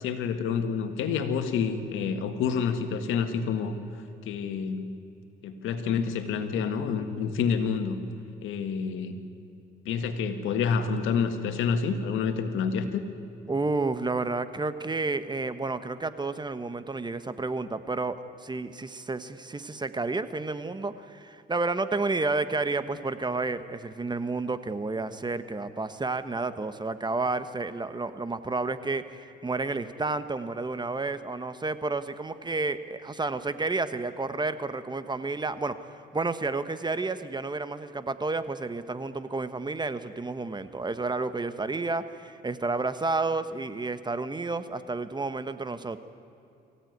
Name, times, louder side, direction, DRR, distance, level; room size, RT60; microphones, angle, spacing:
voice 1, 0.0-3.8 4.3-4.9 5.4-8.0 8.4-9.2 9.9-13.0, left 6 dB, 90° left, 8 dB, 1.8 m, -28 dB
voice 2, 13.5-46.0, right 3 dB, 20° right, 11 dB, 1.2 m, -31 dB
23.0 x 16.0 x 9.5 m, 2.6 s
cardioid pair, 90°, 20 cm